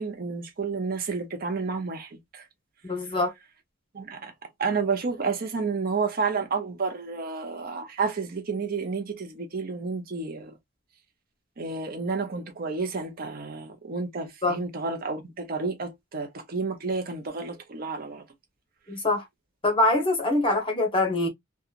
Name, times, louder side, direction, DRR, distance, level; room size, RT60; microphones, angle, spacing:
voice 1, 0.0-2.4 3.9-4.3 4.6-10.5 11.6-18.2, right 4 dB, 50° right, 0.7 m, -30 dB
voice 2, 2.8-3.3 14.4-14.6 18.9-19.2 19.6-21.3, left 2 dB, 25° left, 1.1 m, -24 dB
2.8 x 2.3 x 2.4 m
head